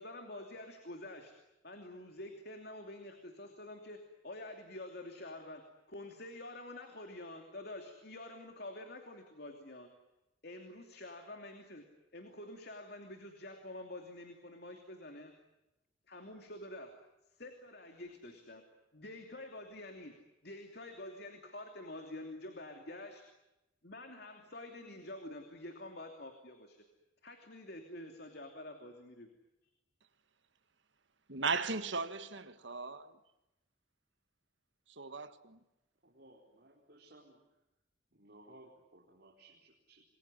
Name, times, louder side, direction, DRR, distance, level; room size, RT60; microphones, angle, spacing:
voice 1, 0.0-1.3 1.6-5.6 5.9-9.9 10.4-11.9 12.1-15.3 16.1-16.9 17.3-18.6 18.9-20.1 20.4-23.2 23.8-26.8 27.2-29.3, left 1 dB, 55° left, 2.8 m, -48 dB
voice 2, 31.3-33.2 34.9-35.6, right 4 dB, 70° right, 1.8 m, -37 dB
voice 3, 36.0-37.4 38.1-40.0, right 1 dB, 55° right, 4.6 m, -59 dB
27.5 x 22.0 x 9.9 m
head